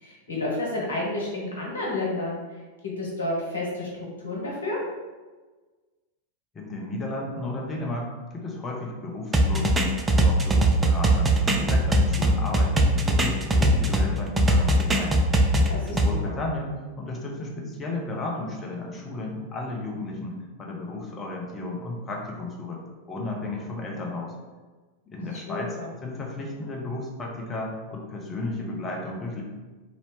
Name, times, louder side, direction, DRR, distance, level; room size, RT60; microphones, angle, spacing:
voice 1, 0.0-2.4 3.0-3.9 4.2-4.8 15.7-16.4 25.5-25.9, left 2 dB, 70° left, -4 dB, 1.0 m, -30 dB
voice 2, 6.5-15.3 15.6-16.7 17.0-22.8 23.1-24.3 25.1-25.8 26.0-29.4, left 2 dB, 20° left, -2 dB, 0.8 m, -33 dB
sound 1, 9.3-14.1 14.4-16.1, right 1 dB, 15° right, 0.4 m, -20 dB
2.8 x 2.7 x 3.3 m, 1.3 s
figure-of-eight pair, 90°, 0 cm